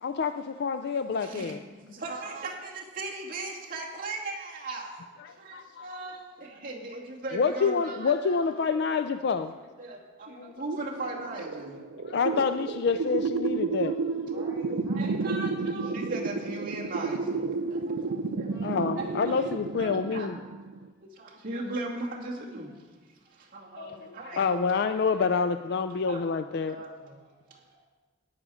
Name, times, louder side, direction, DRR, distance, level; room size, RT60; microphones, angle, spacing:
voice 1, 0.0-1.6 5.2-6.0 7.3-9.6 10.4-10.5 12.1-14.0 18.6-20.4 23.8-26.8, left 5 dB, 55° left, 10 dB, 0.4 m, -28 dB
voice 2, 1.1-5.0 5.4-8.5 8.8-8.9 9.8-11.8 14.9-18.5 18.9-19.5 19.8-20.3 21.0-22.8 23.3-24.6 25.1-25.2 26.1-26.2 26.6-27.2, right 2 dB, 45° right, -4 dB, 2.3 m, -38 dB
sound 1, 10.6-20.9, right 4 dB, 80° right, 0.6 m, -31 dB
voice 3, 14.3-16.8 18.5-18.8 21.2-21.5 22.3-22.8 23.1-23.9 24.3-24.5 27.2-27.9, right 2 dB, 20° right, -7 dB, 3.7 m, -53 dB
13.0 x 9.9 x 4.9 m, 1.3 s
head